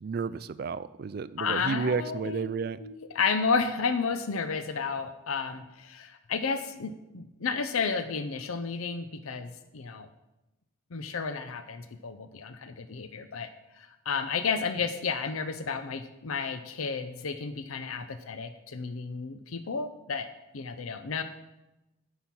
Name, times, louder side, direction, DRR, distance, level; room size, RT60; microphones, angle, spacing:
voice 1, 0.0-2.8, right 5 dB, 45° right, 15 dB, 0.3 m, -31 dB
voice 2, 1.4-2.5 2.8-10.1 10.9-13.5 13.8-20.3 20.5-21.2, left 5 dB, 85° left, 10 dB, 0.6 m, -32 dB
10.0 x 5.7 x 5.9 m, 0.98 s
head